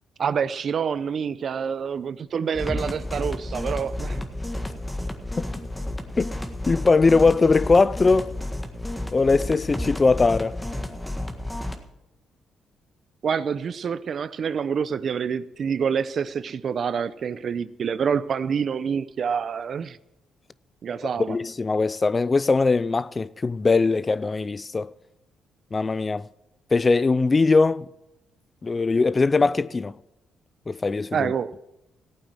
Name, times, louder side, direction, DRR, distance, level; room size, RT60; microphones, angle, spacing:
voice 1, 0.2-4.3 13.2-20.0 20.8-21.4 31.1-31.5, right 7 dB, 55° right, 0.7 m, -27 dB
sound 1, 2.5-11.8, left 1 dB, 10° left, 1.7 m, -31 dB
voice 2, 6.7-8.3 9.1-10.6 21.3-24.9 25.7-26.3 26.7-27.9 28.6-29.9 30.7-31.3, left 4 dB, 30° left, 0.4 m, -20 dB
15.0 x 9.0 x 7.6 m
cardioid pair, 90°, 0 cm